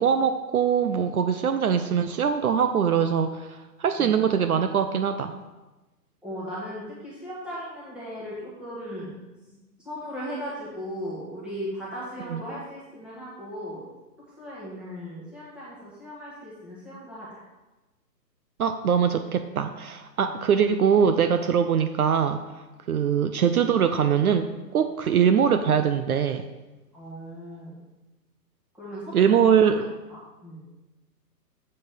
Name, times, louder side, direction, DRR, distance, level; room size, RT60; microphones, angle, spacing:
voice 1, 0.0-5.3 12.3-12.4 18.6-22.4 22.9-26.5 29.1-29.9, right 7 dB, 60° right, 9 dB, 0.6 m, -22 dB
voice 2, 6.2-9.1 9.5-9.6 9.8-13.9 14.4-17.4 26.9-27.8 28.7-29.4 30.1-30.6, equal, ahead, -9 dB, 1.4 m, -37 dB
7.6 x 3.9 x 6.7 m, 1.1 s
hypercardioid pair, 160°, 50 cm